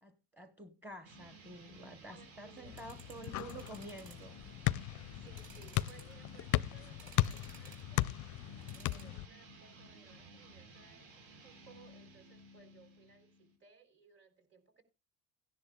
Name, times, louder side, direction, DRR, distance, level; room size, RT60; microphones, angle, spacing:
voice 1, 0.0-4.3, right 1 dB, 5° right, 1.0 m, -49 dB
sound 1, 1.0-13.6, right 1 dB, 75° right, 4.3 m, -55 dB
voice 2, 2.1-2.8 5.1-8.2 8.7-14.8, right 5 dB, 40° right, 3.9 m, -62 dB
sound 2, 2.5-4.3 4.7-4.8 5.3-6.4 6.9-7.9 8.6-9.1, right 5 dB, 60° right, 4.8 m, -58 dB
sound 3, 2.6-9.3, left 16 dB, 50° left, 0.4 m, -37 dB
16.5 x 10.5 x 2.2 m
supercardioid pair, 100°, 40 cm